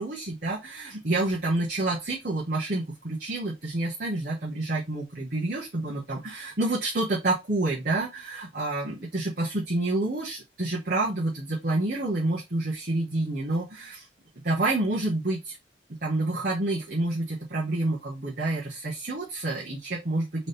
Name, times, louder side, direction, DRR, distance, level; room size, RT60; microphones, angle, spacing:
voice 1, 0.0-14.1 14.4-15.6 16.0-20.5, right 2 dB, 55° right, -5 dB, 1.3 m, -28 dB
4.1 x 3.8 x 3.3 m, 0.23 s
head